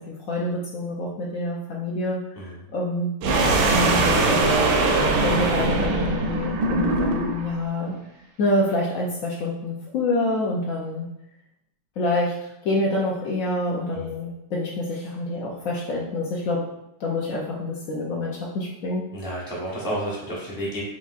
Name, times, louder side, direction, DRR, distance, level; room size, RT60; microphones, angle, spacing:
voice 1, 0.1-2.2 2.7-3.1 3.6-4.5 5.2-8.0 8.4-11.1 12.0-12.3 12.6-16.6 17.0-19.0, left 2 dB, 65° left, -3 dB, 0.9 m, -26 dB
sound 1, 3.2-7.5, right 2 dB, 90° right, 1.2 m, -21 dB
voice 2, 19.1-20.8, equal, 5° right, -5 dB, 0.5 m, -31 dB
5.3 x 3.0 x 2.4 m, 0.81 s
omnidirectional pair, 1.8 m